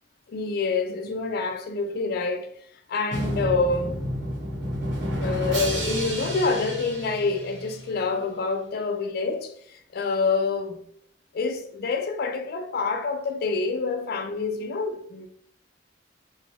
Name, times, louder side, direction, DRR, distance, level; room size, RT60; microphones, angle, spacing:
voice 1, 0.3-2.5 2.9-4.0 5.2-10.8 11.3-15.3, left 4 dB, 55° left, 0.3 m, -27 dB
Drum, 3.1-8.0, equal, 70° right, 0.8 m, -30 dB
2.6 x 2.1 x 2.9 m
head